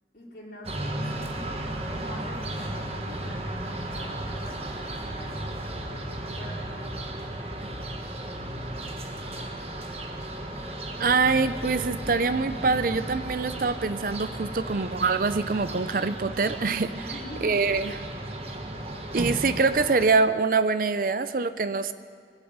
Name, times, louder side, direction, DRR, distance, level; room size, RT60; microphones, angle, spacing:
voice 1, 0.1-5.4 5.9-7.2 17.1-17.5, left 1 dB, 50° left, -5 dB, 4.1 m, -44 dB
sound 1, 0.6-20.1, right 1 dB, 35° right, 1.3 m, -35 dB
sound 2, 10.2-15.7, left 1 dB, 10° left, 1.1 m, -46 dB
voice 2, 11.0-17.1 17.4-18.0 19.1-21.9, right 4 dB, 50° right, 13 dB, 0.5 m, -24 dB
22.5 x 8.0 x 8.1 m, 2.1 s
head